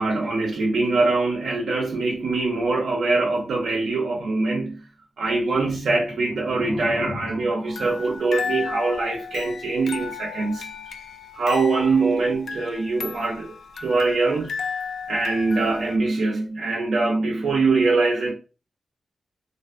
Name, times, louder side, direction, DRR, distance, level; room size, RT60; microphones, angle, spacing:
voice 1, 0.0-4.8 5.2-10.7 11.3-14.5 15.1-18.3, right 3 dB, 85° right, 0.6 m, -23 dB
sound 1, 5.8-8.9, left 2 dB, 25° left, 0.7 m, -37 dB
sound 2, 7.7-16.0, left 5 dB, 90° left, 0.3 m, -34 dB
3.3 x 2.5 x 2.5 m
wide cardioid pair, 175°, 0 cm